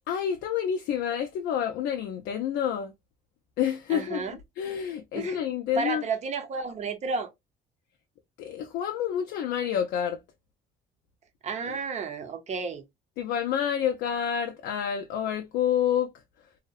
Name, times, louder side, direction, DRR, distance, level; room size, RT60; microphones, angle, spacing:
voice 1, 0.1-2.9 3.6-4.2 4.6-6.0 8.4-10.2 11.6-11.8 13.2-16.1, left 9 dB, 80° left, 0.4 m, -28 dB
voice 2, 3.9-4.3 5.1-5.4 5.7-7.3 11.4-12.8, right 4 dB, 45° right, 0.6 m, -32 dB
2.6 x 2.1 x 2.2 m
cardioid pair, 110°, 17 cm